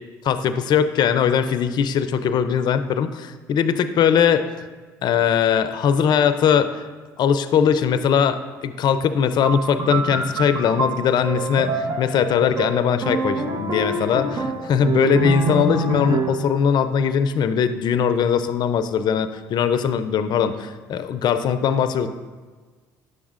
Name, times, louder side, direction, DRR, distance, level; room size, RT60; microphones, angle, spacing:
voice 1, 0.2-4.7 5.0-6.8 7.2-22.1, left 7 dB, 55° left, 11 dB, 0.4 m, -20 dB
sound 1, 9.4-16.5, right 3 dB, 45° right, 0.9 m, -26 dB
9.7 x 7.0 x 2.5 m, 1.4 s
supercardioid pair, 70°, 9 cm